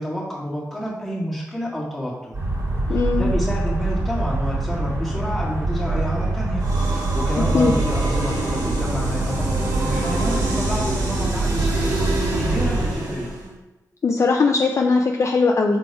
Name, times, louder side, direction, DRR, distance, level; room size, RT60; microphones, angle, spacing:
voice 1, 0.0-2.3 2.9-13.3, equal, 5° left, -7 dB, 1.7 m, -29 dB
sound 1, 2.3-12.9, right 2 dB, 40° right, 1.7 m, -24 dB
voice 2, 2.9-3.3 7.5-7.7 14.0-15.8, left 4 dB, 45° left, 1 dB, 0.4 m, -19 dB
sound 2, 6.6-13.5, right 2 dB, 70° right, 1.3 m, -28 dB
6.3 x 4.1 x 4.6 m, 1.1 s
wide cardioid pair, 170°, 7 cm